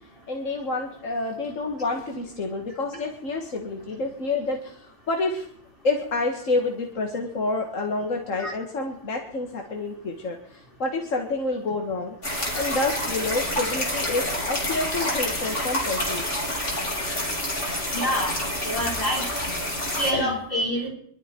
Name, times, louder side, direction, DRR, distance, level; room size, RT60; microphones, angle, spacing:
voice 1, 0.3-5.5 5.8-12.2 12.5-16.4 20.1-20.4, left 3 dB, 85° left, 2 dB, 2.1 m, -28 dB
sound 1, 12.2-20.1, left 1 dB, 70° left, 4.1 m, -28 dB
voice 2, 17.9-18.3 18.6-19.2 20.0-20.9, equal, 45° left, -3 dB, 5.2 m, -27 dB
23.0 x 12.5 x 4.5 m, 0.67 s
omnidirectional pair, 1.3 m